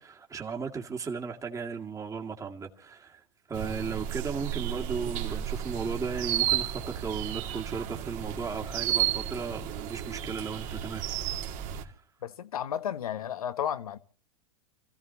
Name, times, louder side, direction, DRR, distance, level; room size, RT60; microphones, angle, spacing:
voice 1, 0.0-3.2 3.5-11.0 11.8-11.9, right 5 dB, 15° right, 2.2 m, -36 dB
sound 1, 3.5-11.8, right 11 dB, 45° right, 2.3 m, -32 dB
voice 2, 12.2-14.0, left 9 dB, 70° left, 1.3 m, -33 dB
29.5 x 16.0 x 2.8 m
figure-of-eight pair, 95°, 19 cm